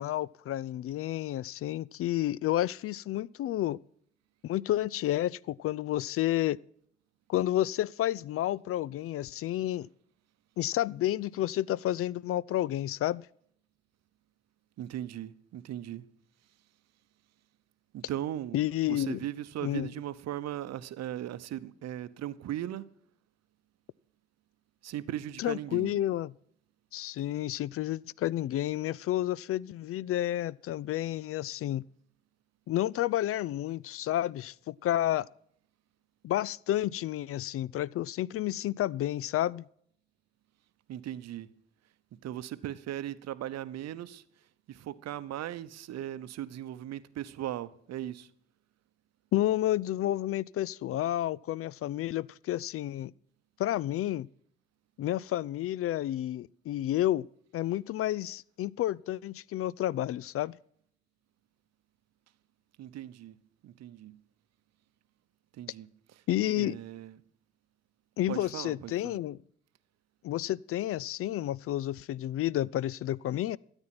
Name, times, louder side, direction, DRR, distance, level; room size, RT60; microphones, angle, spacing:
voice 1, 0.0-3.8 4.4-6.6 7.3-9.9 10.6-13.3 18.5-19.3 19.6-19.9 25.4-26.3 26.9-31.9 32.7-35.3 36.2-39.7 49.3-53.1 53.6-54.3 55.0-57.3 57.5-60.6 66.3-66.8 68.2-69.4 70.2-73.6, left 13 dB, 45° left, 0.4 m, -30 dB
voice 2, 14.8-16.1 17.9-18.6 18.9-22.8 24.8-25.9 40.9-41.5 42.2-44.2 44.7-48.3 62.8-63.4 63.6-64.2 65.6-65.9 66.6-67.1 68.3-69.2, right 12 dB, 55° right, 0.8 m, -38 dB
13.5 x 8.9 x 5.9 m
hypercardioid pair, 45°, 31 cm